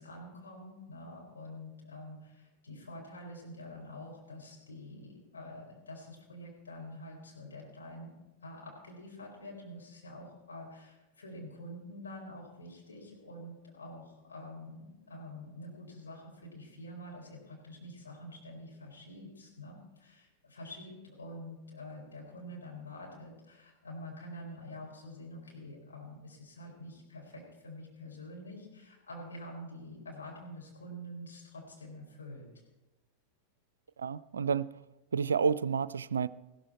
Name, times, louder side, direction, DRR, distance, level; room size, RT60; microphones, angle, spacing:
voice 1, 0.0-8.1 8.4-32.5, left 1 dB, 70° left, 4.6 m, -47 dB
voice 2, 34.0-34.7 35.1-36.3, right 6 dB, 70° right, 0.4 m, -30 dB
15.0 x 13.5 x 4.3 m
figure-of-eight pair, 90°, 0 cm